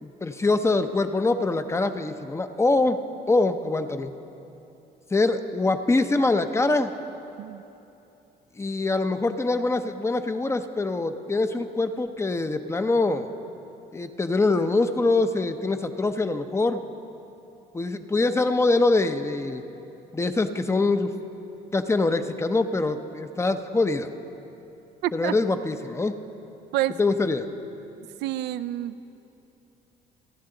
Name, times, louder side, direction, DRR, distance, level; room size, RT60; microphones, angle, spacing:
voice 1, 0.0-3.0 3.3-4.1 5.1-6.9 8.6-13.3 13.9-16.8 17.7-19.6 20.1-21.1 21.7-24.1 25.1-26.1 27.0-27.5, left 3 dB, 15° left, 9 dB, 0.7 m, -24 dB
voice 2, 25.0-25.3 26.7-27.0 28.2-29.0, right 14 dB, 80° right, 12 dB, 0.5 m, -28 dB
29.5 x 10.5 x 3.9 m, 2.9 s
cardioid pair, 110°, 17 cm